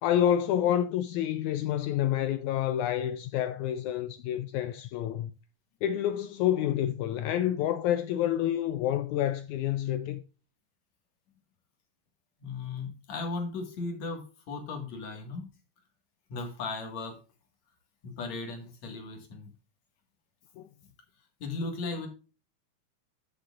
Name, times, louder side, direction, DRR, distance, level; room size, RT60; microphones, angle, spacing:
voice 1, 0.0-5.3 5.8-10.2 20.6-20.7, left 11 dB, 90° left, 1.7 m, -28 dB
voice 2, 12.4-15.5 16.3-17.1 18.0-19.5 21.4-22.1, left 3 dB, 55° left, 2.8 m, -36 dB
14.0 x 6.6 x 2.4 m
omnidirectional pair, 3.9 m